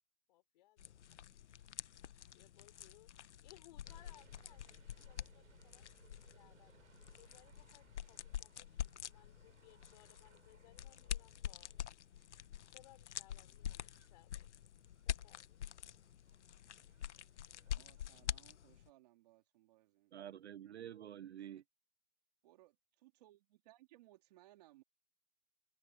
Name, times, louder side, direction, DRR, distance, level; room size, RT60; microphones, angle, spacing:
voice 1, 0.3-0.9 2.3-3.1 3.4-11.7 12.7-14.5 15.1-15.6, left 16 dB, 35° left, 5.8 m, -65 dB
sound 1, 0.8-18.9, left 10 dB, 60° left, 0.9 m, -47 dB
sound 2, 3.8-18.3, right 8 dB, 75° right, 5.0 m, -69 dB
voice 2, 17.7-20.1 22.5-22.7 23.0-24.8, right 16 dB, 30° right, 3.6 m, -65 dB
voice 3, 20.1-21.6, right 11 dB, 55° right, 0.6 m, -49 dB
open air
hypercardioid pair, 175°, 40 cm